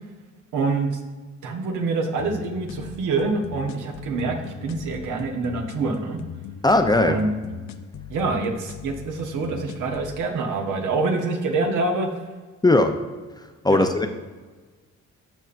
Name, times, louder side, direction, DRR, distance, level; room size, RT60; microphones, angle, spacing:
voice 1, 0.5-0.9 1.4-6.2 6.9-7.4 8.1-12.1 13.7-13.9, right 3 dB, 80° right, 3 dB, 1.3 m, -26 dB
sound 1, 2.2-10.2, left 8 dB, 65° left, 0.6 m, -39 dB
voice 2, 6.6-7.2 12.6-12.9 13.6-14.1, left 2 dB, 15° left, 6 dB, 0.6 m, -18 dB
13.5 x 5.5 x 2.6 m, 1.3 s
cardioid pair, 90°, 30 cm